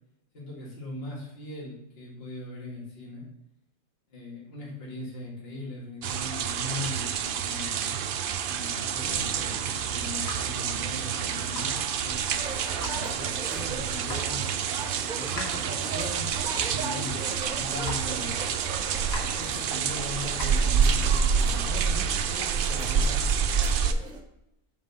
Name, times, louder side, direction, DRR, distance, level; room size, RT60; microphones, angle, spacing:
voice 1, 0.3-3.3 4.1-8.0 8.5-12.2 12.8-14.5 15.1-16.3 16.6-17.2 17.5-18.5 19.3-24.0, left 2 dB, 45° left, -4 dB, 2.1 m, -40 dB
sound 1, 6.0-23.9, right 7 dB, 70° right, 0.5 m, -28 dB
sound 2, 9.0-20.5, right 2 dB, 75° left, 2.0 m, -41 dB
sound 3, 12.4-24.2, right 4 dB, 40° right, 0.9 m, -40 dB
7.4 x 4.0 x 5.8 m, 0.84 s
omnidirectional pair, 1.5 m